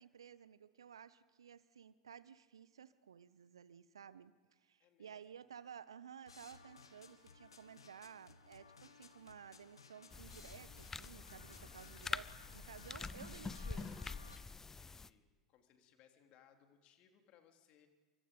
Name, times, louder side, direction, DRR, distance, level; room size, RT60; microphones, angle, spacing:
voice 1, 0.0-14.0, right 8 dB, 80° right, 0.8 m, -55 dB
voice 2, 4.8-5.4 14.7-17.9, left 9 dB, 45° left, 3.3 m, -68 dB
sound 1, 6.3-14.4, left 5 dB, 85° left, 1.6 m, -60 dB
sound 2, 10.1-15.1, left 4 dB, 15° left, 0.7 m, -46 dB
28.5 x 24.5 x 5.3 m
figure-of-eight pair, 85°, 3 cm